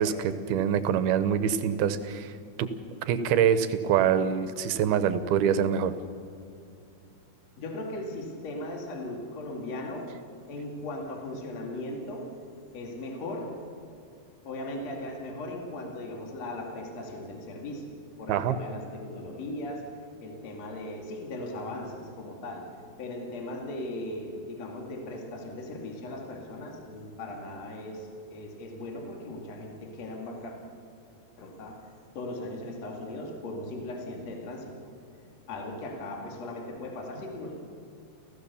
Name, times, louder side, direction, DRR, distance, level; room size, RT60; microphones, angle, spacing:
voice 1, 0.0-2.3 2.6-2.7 3.1-5.9 18.3-18.6, right 8 dB, 75° right, 12 dB, 2.5 m, -25 dB
voice 2, 7.5-10.2 10.5-12.4 12.7-13.6 14.4-30.6 31.4-34.9 35.5-37.5, left 1 dB, 45° left, 1 dB, 3.2 m, -38 dB
30.0 x 15.5 x 6.9 m, 2.5 s
omnidirectional pair, 4.9 m